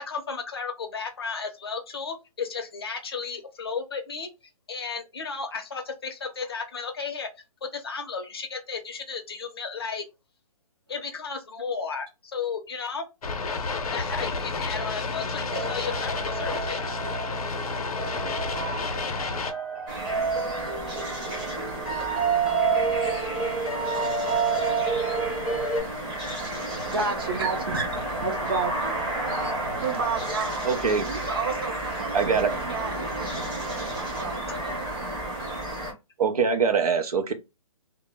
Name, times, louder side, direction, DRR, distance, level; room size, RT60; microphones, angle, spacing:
voice 1, 0.0-4.3 4.7-7.3 7.6-10.0 10.9-13.1 13.9-16.8 18.9-19.0 34.5-34.6, left 5 dB, 40° left, 0.5 m, -34 dB
sound 1, 13.2-19.5, left 4 dB, 85° left, 0.6 m, -30 dB
sound 2, 15.5-25.8, right 5 dB, 5° left, 0.7 m, -29 dB
sound 3, 19.9-35.9, right 1 dB, 20° right, 1.0 m, -32 dB
voice 2, 26.6-29.0 29.4-30.6 30.9-34.8, right 4 dB, 40° right, 0.6 m, -32 dB
voice 3, 30.6-31.1 32.1-32.5 36.2-37.3, right 5 dB, 85° right, 0.6 m, -23 dB
2.1 x 2.0 x 3.3 m
hypercardioid pair, 175°, 19 cm